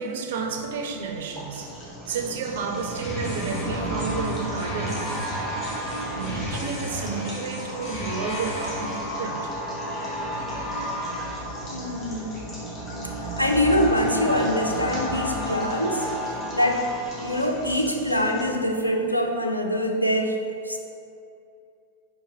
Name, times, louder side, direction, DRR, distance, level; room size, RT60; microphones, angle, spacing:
voice 1, 0.0-5.1 6.1-9.5, right 5 dB, 55° right, 3 dB, 0.4 m, -31 dB
sound 1, 0.8-18.5 18.8-18.9, equal, 5° left, 0.7 m, -33 dB
sound 2, 1.1-18.5, left 1 dB, 30° left, 1.3 m, -41 dB
sound 3, 2.7-9.2, equal, 55° left, 1.2 m, -36 dB
voice 2, 11.7-12.4 13.4-16.1 16.5-16.8 17.2-20.4 20.6-20.8, equal, 85° left, 2 dB, 0.3 m, -24 dB
5.0 x 2.4 x 2.7 m, 2.6 s
figure-of-eight pair, 90°, 0 cm